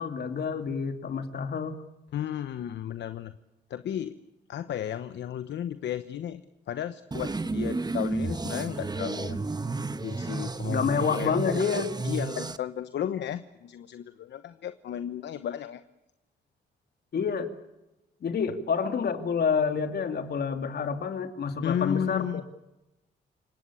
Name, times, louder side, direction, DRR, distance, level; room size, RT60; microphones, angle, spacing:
voice 1, 0.0-1.7 10.7-11.9 17.1-17.5 18.2-22.4, left 6 dB, 60° left, 7 dB, 2.8 m, -28 dB
voice 2, 2.1-3.3 3.7-4.2 4.5-6.4 6.7-9.5 10.0-15.8 21.6-22.4, left 10 dB, 75° left, 11 dB, 1.0 m, -34 dB
sound 1, 7.1-12.6, right 3 dB, 20° right, 1.1 m, -32 dB
29.0 x 18.0 x 8.6 m, 0.98 s
cardioid pair, 85°, 18 cm